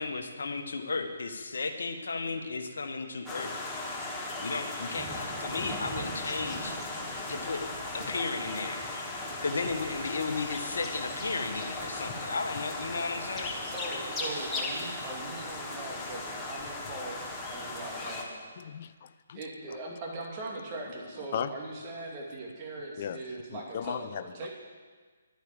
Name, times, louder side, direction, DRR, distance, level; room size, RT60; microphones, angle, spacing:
voice 1, 0.0-3.6 4.4-6.8 7.3-7.7 7.9-9.0 9.4-13.5, left 4 dB, 60° left, 6 dB, 1.4 m, -34 dB
sound 1, 3.3-18.2, left 2 dB, 10° left, 1.6 m, -37 dB
Thunder, 4.8-14.2 14.5-14.7 15.4-15.6 16.5-16.6, right 2 dB, 10° right, 1.2 m, -48 dB
voice 2, 13.6-17.2 17.5-18.5 19.3-24.5, right 2 dB, 25° right, -2 dB, 2.5 m, -40 dB
voice 3, 18.6-19.4 21.3-21.5 23.0-23.2 23.5-24.2, left 9 dB, 40° left, 12 dB, 0.6 m, -36 dB
12.0 x 9.2 x 7.1 m, 1.5 s
figure-of-eight pair, 135°, 0 cm